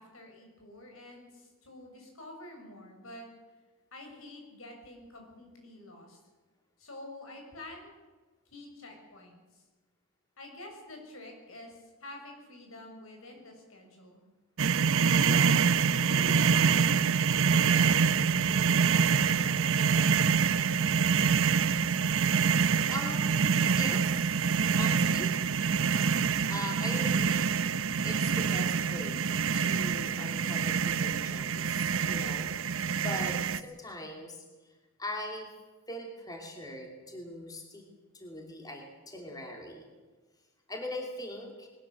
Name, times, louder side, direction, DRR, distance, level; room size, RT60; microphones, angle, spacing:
voice 1, 0.0-3.3 3.9-6.2 6.8-7.9 8.5-9.6 10.4-14.2 15.2-15.6 16.0-18.0 18.8-20.9, left 1 dB, 75° left, 2 dB, 6.8 m, -47 dB
sound 1, 14.6-33.6, right 6 dB, 70° right, 0.7 m, -26 dB
voice 2, 22.9-24.3 24.8-25.3 26.5-27.5 28.0-34.4 35.0-35.5 35.9-37.9 38.1-39.9 40.7-41.7, left 1 dB, 20° left, 2 dB, 2.9 m, -41 dB
21.0 x 19.5 x 7.7 m, 1.3 s
head